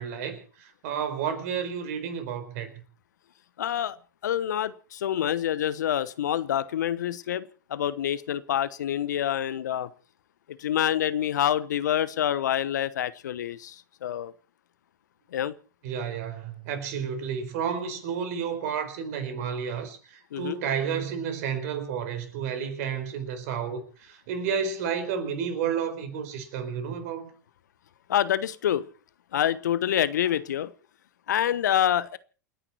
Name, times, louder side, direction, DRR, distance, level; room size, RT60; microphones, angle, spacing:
voice 1, 0.0-2.8 15.8-27.3, right 7 dB, 60° right, 4.6 m, -31 dB
voice 2, 3.6-4.0 4.2-7.4 7.7-9.9 10.6-13.8 14.0-14.3 15.3-15.5 20.3-20.6 28.1-28.8 29.3-30.7 31.3-32.2, left 10 dB, 70° left, 1.0 m, -26 dB
28.5 x 10.0 x 4.4 m
hypercardioid pair, 90°, 10 cm